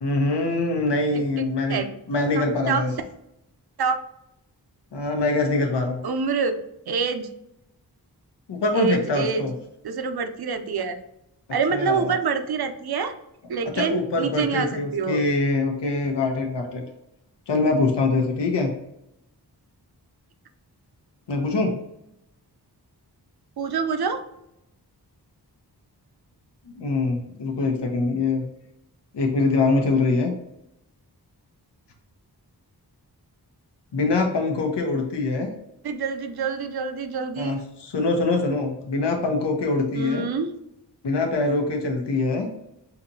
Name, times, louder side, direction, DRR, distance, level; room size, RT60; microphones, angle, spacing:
voice 1, 0.0-2.9 4.9-6.0 8.5-9.5 11.7-12.1 13.8-16.8 17.5-18.7 21.3-21.7 26.7-28.4 29.1-30.3 33.9-35.5 37.4-40.2 41.0-42.5, left 3 dB, 90° left, 2 dB, 0.8 m, -24 dB
voice 2, 1.1-2.0 2.3-2.8 3.8-4.0 6.0-7.3 8.7-9.5 9.8-11.0 11.5-13.1 13.5-15.3 23.6-24.2 35.8-37.7 39.9-40.6, right 5 dB, 65° right, 7 dB, 0.6 m, -26 dB
5.7 x 2.8 x 2.7 m, 0.84 s
wide cardioid pair, 100°, 40 cm